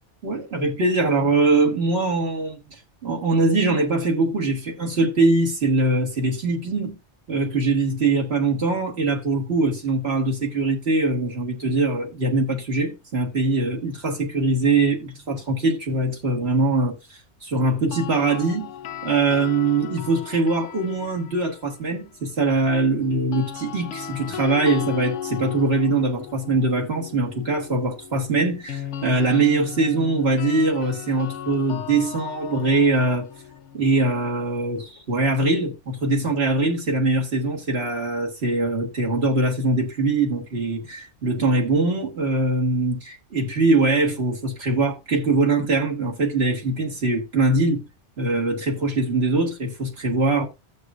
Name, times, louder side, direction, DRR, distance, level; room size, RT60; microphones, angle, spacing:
voice 1, 0.2-2.6 3.0-6.9 7.3-18.7 19.0-33.3 33.7-47.8 48.2-50.5, right 2 dB, 60° right, 1.8 m, -22 dB
sound 1, 17.7-21.9 23.1-35.0, left 9 dB, 80° left, 1.0 m, -36 dB
16.0 x 6.5 x 2.4 m
omnidirectional pair, 1.2 m